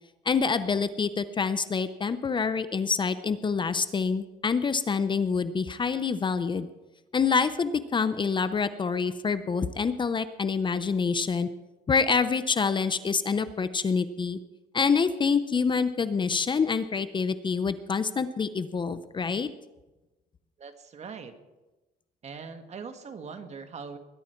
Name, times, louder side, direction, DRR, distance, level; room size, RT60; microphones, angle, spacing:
voice 1, 0.2-6.7 7.1-11.5 11.9-14.4 14.7-19.5, left 5 dB, 30° left, 12 dB, 0.7 m, -26 dB
voice 2, 20.6-21.4 22.2-24.0, right 5 dB, 40° right, 7 dB, 1.7 m, -41 dB
21.0 x 11.0 x 4.5 m, 1.1 s
cardioid pair, 110°, 17 cm